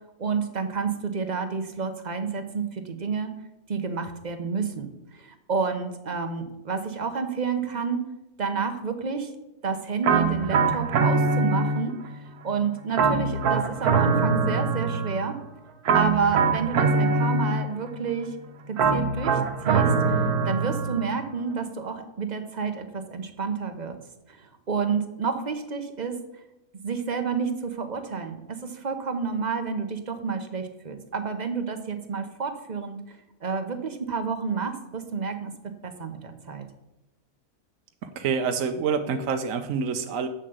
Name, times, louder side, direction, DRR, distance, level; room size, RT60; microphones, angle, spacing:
voice 1, 0.2-3.3 3.7-8.0 8.4-9.3 9.6-11.9 12.4-15.3 15.9-18.3 18.7-19.4 19.6-20.2 20.4-24.0 24.3-26.1 26.8-33.0 33.4-35.5 35.8-36.6, right 5 dB, 30° right, 7 dB, 1.0 m, -29 dB
sound 1, 10.0-12.1 12.9-15.3 15.9-17.9 18.8-21.2, right 4 dB, 90° right, 1.5 m, -23 dB
voice 2, 38.0-40.3, right 6 dB, 65° right, 6 dB, 1.1 m, -27 dB
7.4 x 6.8 x 7.9 m, 0.92 s
omnidirectional pair, 1.6 m